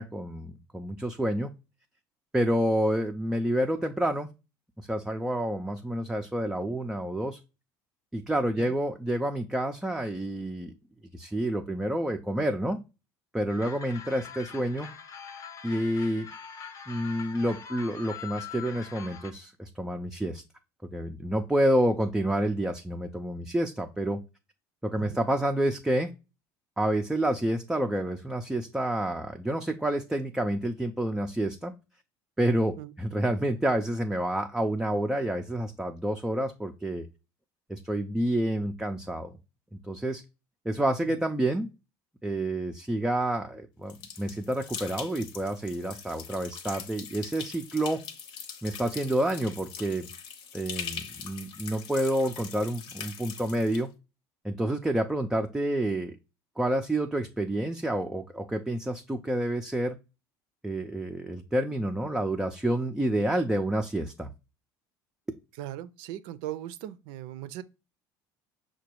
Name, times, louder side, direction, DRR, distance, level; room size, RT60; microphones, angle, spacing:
voice 1, 0.0-1.5 2.3-4.3 4.8-7.4 8.1-10.7 11.1-12.8 13.3-14.9 15.6-16.3 16.9-20.4 20.9-24.2 24.8-26.1 26.8-31.7 32.4-37.1 37.7-39.3 39.9-40.2 40.7-41.7 42.2-48.0 48.6-50.1 50.5-53.9 54.4-56.2 56.6-60.0 60.6-64.3, right 1 dB, 5° right, 0.4 m, -29 dB
sound 1, 13.5-19.3, left 7 dB, 40° left, 0.6 m, -43 dB
sound 2, 43.9-53.8, left 7 dB, 65° left, 0.9 m, -42 dB
voice 2, 65.6-67.6, right 13 dB, 80° right, 0.4 m, -39 dB
5.7 x 2.2 x 2.9 m
cardioid pair, 125°, 9 cm